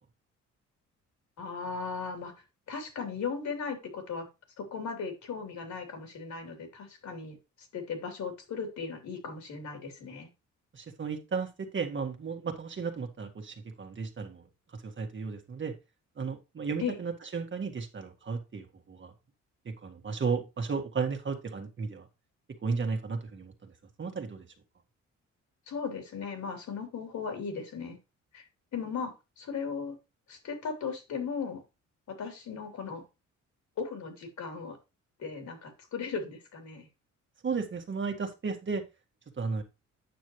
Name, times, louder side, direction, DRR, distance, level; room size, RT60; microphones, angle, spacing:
voice 1, 1.4-2.3 2.7-4.3 4.6-10.3 16.8-17.0 25.7-28.0 28.3-28.4 28.7-30.0 30.3-31.6 32.1-33.0 33.8-34.8 35.2-36.9, left 5 dB, 65° left, 3.4 m, -37 dB
voice 2, 10.7-14.5 14.7-15.7 16.2-19.1 19.7-22.1 22.6-23.7 24.0-24.5 37.4-38.8 39.4-39.6, right 5 dB, 40° right, 1.8 m, -34 dB
9.4 x 6.3 x 3.1 m
cardioid pair, 90°, 30 cm